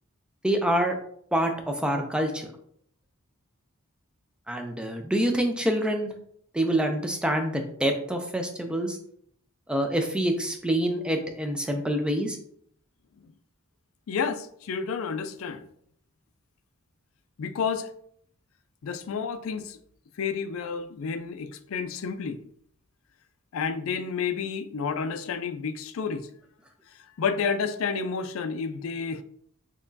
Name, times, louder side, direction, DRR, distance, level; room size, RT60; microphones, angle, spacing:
voice 1, 0.4-1.0 1.3-2.5 4.5-6.1 6.5-9.0 9.7-12.4, right 1 dB, 5° right, 4 dB, 0.4 m, -26 dB
voice 2, 14.1-15.7 17.4-17.9 18.8-19.8 20.2-22.4 23.5-26.3 27.2-29.2, left 6 dB, 65° left, 10 dB, 0.4 m, -30 dB
4.2 x 3.0 x 2.7 m, 0.66 s
head